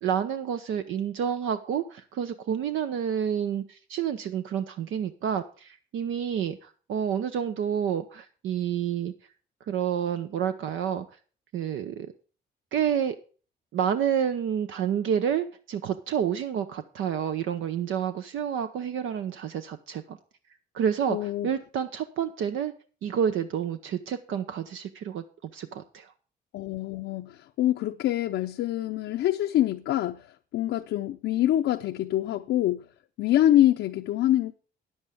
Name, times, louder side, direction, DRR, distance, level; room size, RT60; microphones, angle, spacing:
voice 1, 0.0-9.1 9.7-11.1 11.5-12.1 12.7-13.2 13.7-20.2 20.7-22.7 23.0-26.1, right 8 dB, 80° right, 0.8 m, -29 dB
voice 2, 21.1-21.5 26.5-30.3 30.5-32.9 33.2-34.5, left 13 dB, 75° left, 0.6 m, -25 dB
9.6 x 7.9 x 5.0 m
cardioid pair, 90°, 20 cm